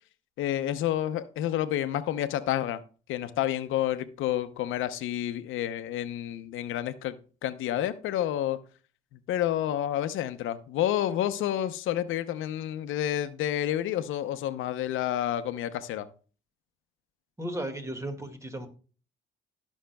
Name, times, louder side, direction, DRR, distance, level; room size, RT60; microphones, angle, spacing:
voice 1, 0.4-2.8 3.1-8.6 9.3-16.1, left 12 dB, 85° left, 0.7 m, -29 dB
voice 2, 17.4-18.7, right 1 dB, 15° right, 1.9 m, -35 dB
19.0 x 6.4 x 2.3 m
cardioid pair, 90°, 20 cm